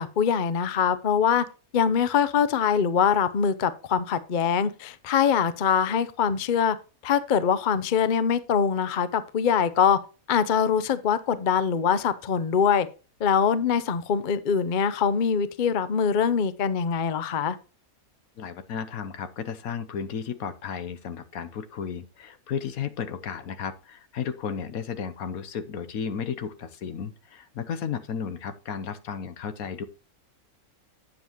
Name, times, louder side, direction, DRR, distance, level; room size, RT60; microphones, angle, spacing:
voice 1, 0.0-1.4 1.7-6.8 7.0-10.0 10.3-12.9 13.2-17.6, left 7 dB, 45° left, 14 dB, 0.6 m, -23 dB
voice 2, 18.4-29.9, left 7 dB, 70° left, 10 dB, 1.3 m, -34 dB
9.1 x 7.3 x 3.0 m, 0.32 s
omnidirectional pair, 1.6 m